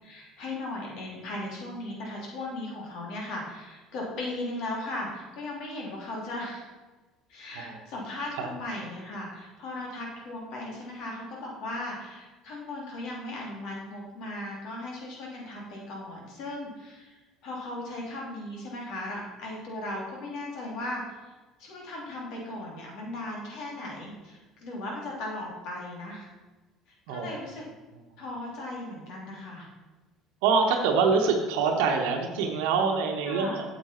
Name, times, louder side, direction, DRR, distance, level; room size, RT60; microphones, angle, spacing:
voice 1, 0.0-6.7 7.3-21.3 21.6-26.3 27.1-27.6 28.2-29.7 33.3-33.7, left 1 dB, 65° left, -2 dB, 3.0 m, -37 dB
voice 2, 30.4-33.7, right 5 dB, 80° right, 2 dB, 1.0 m, -25 dB
8.2 x 7.3 x 4.4 m, 1.2 s
hypercardioid pair, 70°, 0 cm